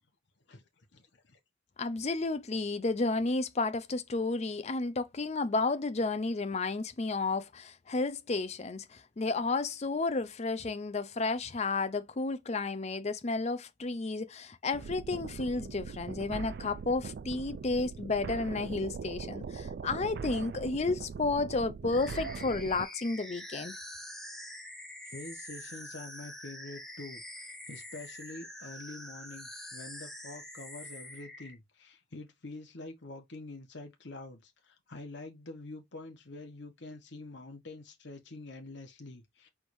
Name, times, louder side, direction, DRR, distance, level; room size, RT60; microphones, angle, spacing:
voice 1, 0.9-1.4 25.0-39.5, left 2 dB, 60° left, 1.1 m, -46 dB
voice 2, 1.8-23.7, left 3 dB, 35° left, 0.5 m, -32 dB
sound 1, 14.7-22.9, right 5 dB, 55° right, 0.3 m, -41 dB
sound 2, 21.9-31.5, left 1 dB, ahead, 0.8 m, -45 dB
4.6 x 3.6 x 2.6 m
head